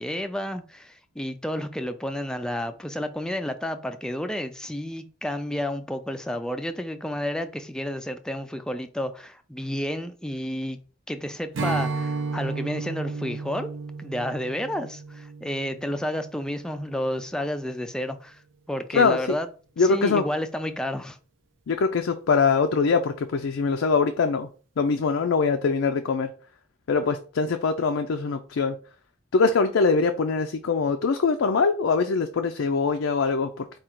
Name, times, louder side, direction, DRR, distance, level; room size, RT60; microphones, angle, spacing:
voice 1, 0.0-10.8 11.1-13.7 14.0-18.4 18.7-19.5 19.8-21.2, left 1 dB, 5° left, 0.3 m, -31 dB
Strum, 11.5-17.0, right 3 dB, 70° right, 0.6 m, -33 dB
voice 2, 18.9-19.4 19.8-20.2 21.7-24.5 24.8-26.3 26.9-28.8 29.3-33.7, left 4 dB, 75° left, 0.4 m, -23 dB
4.9 x 2.4 x 4.4 m
head